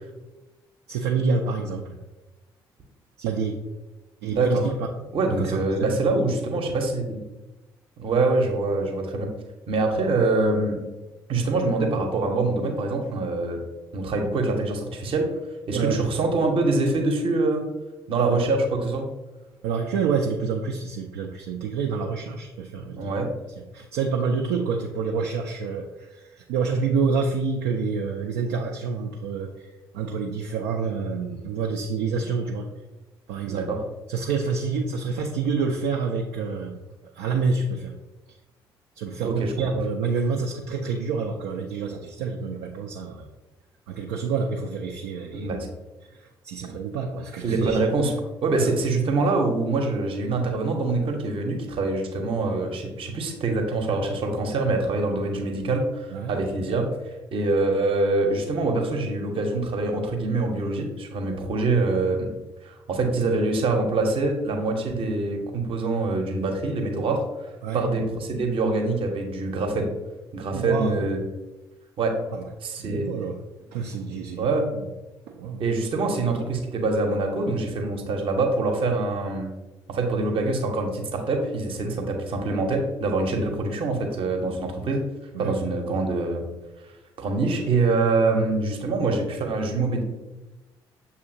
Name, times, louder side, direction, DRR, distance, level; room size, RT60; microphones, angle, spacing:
voice 1, 0.9-2.0 3.2-3.6 4.2-4.9 5.3-6.0 15.7-16.0 18.2-18.4 19.6-23.1 23.6-32.7 33.3-33.7 34.1-37.9 39.0-43.3 43.9-45.5 46.1-47.8 48.5-48.8 56.1-56.4 67.6-67.9 70.5-71.1 72.3-72.4 72.8-73.4 73.7-74.9 75.3-75.7 81.8-82.0 85.3-85.5 88.3-88.5, right 5 dB, 65° right, 1 dB, 0.4 m, -28 dB
voice 2, 4.2-4.6 5.1-7.2 8.0-9.3 9.7-10.8 11.3-13.6 13.9-15.3 15.7-17.6 18.1-19.1 23.0-23.3 33.5-33.8 39.2-39.7 45.3-45.6 47.4-48.1 48.4-56.9 57.3-62.3 62.6-69.9 70.3-71.2 72.0-72.1 72.6-73.1 74.4-74.7 75.6-79.5 79.9-85.0 85.4-86.4 87.2-90.0, right 3 dB, 45° right, 3 dB, 0.8 m, -25 dB
6.9 x 2.7 x 2.6 m, 1.1 s
figure-of-eight pair, 45°, 13 cm